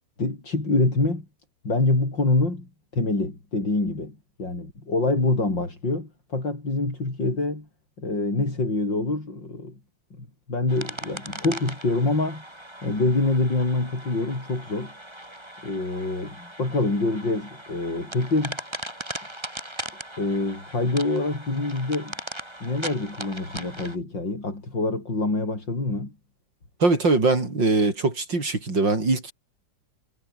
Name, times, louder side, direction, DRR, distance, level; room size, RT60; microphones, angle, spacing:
voice 1, 0.2-1.3 1.6-7.7 8.0-9.8 10.1-12.4 12.8-14.9 15.6-18.6 20.2-22.1 22.6-26.1, left 2 dB, 80° left, 7.3 m, -26 dB
sound 1, 10.7-24.0, right 1 dB, 15° right, 5.4 m, -39 dB
voice 2, 26.8-29.3, right 3 dB, 80° right, 6.0 m, -22 dB
omnidirectional pair, 2.0 m